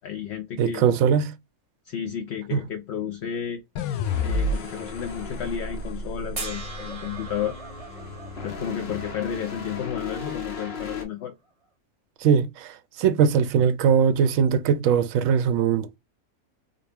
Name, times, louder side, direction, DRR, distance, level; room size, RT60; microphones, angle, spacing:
voice 1, 0.0-0.8 1.8-3.6 4.2-7.6 8.4-11.3, left 9 dB, 65° left, 0.7 m, -32 dB
voice 2, 0.6-1.3 2.5-2.6 12.2-12.7 13.0-16.0, right 7 dB, 70° right, 0.9 m, -20 dB
sound 1, 3.8-7.0, left 2 dB, 85° left, 1.1 m, -30 dB
sound 2, 4.0-11.0, left 4 dB, 50° left, 1.1 m, -38 dB
sound 3, 6.4-9.6 11.6-11.7, right 3 dB, 30° right, 0.8 m, -39 dB
3.7 x 2.3 x 3.3 m
omnidirectional pair, 1.5 m